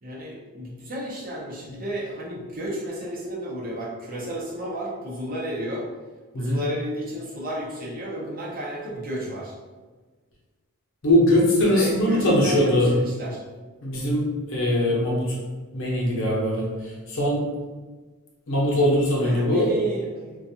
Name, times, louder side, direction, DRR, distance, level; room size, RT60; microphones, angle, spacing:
voice 1, 0.0-5.9 6.3-9.5 11.7-13.4 19.2-20.4, equal, 40° right, -4 dB, 0.7 m, -32 dB
voice 2, 11.0-12.9 13.8-14.2 14.5-15.4 15.7-16.6 17.1-17.4 18.5-19.7, left 1 dB, 60° left, -3 dB, 0.7 m, -21 dB
2.5 x 2.3 x 2.7 m, 1.3 s
head